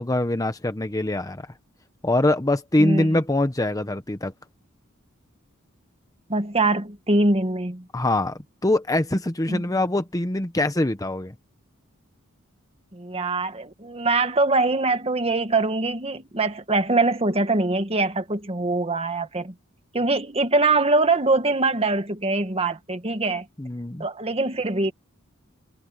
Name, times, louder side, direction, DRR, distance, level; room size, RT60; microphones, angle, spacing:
voice 1, 0.0-1.4 2.0-4.3 7.9-11.3 23.6-24.0, left 1 dB, 15° left, 0.9 m, -23 dB
voice 2, 2.8-3.2 6.3-7.9 9.5-9.6 12.9-19.5 19.9-23.5 24.0-24.9, right 3 dB, 30° right, 1.7 m, -23 dB
head